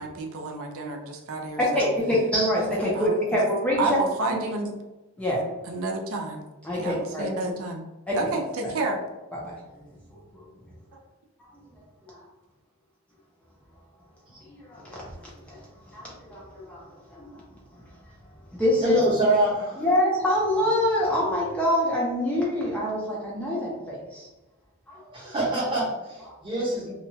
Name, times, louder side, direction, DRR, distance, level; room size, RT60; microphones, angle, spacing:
voice 1, 0.0-1.9 2.9-3.2 3.8-4.7 5.7-6.4 6.8-7.8 8.1-9.0 10.9-11.0, right 3 dB, 70° right, 2 dB, 0.4 m, -30 dB
voice 2, 1.7-3.8 5.2-5.4 6.6-7.3 8.1-8.2 8.6-8.7 9.3-9.5 10.3-10.5 12.0-12.2 14.6-15.0 15.5-15.6 15.9-17.4 18.5-19.0 19.8-24.3 24.9-25.3, left 1 dB, 5° left, -5 dB, 0.5 m, -26 dB
voice 3, 18.8-19.8 25.1-26.9, right 1 dB, 25° right, -6 dB, 0.8 m, -25 dB
2.8 x 2.2 x 2.6 m, 1.1 s
head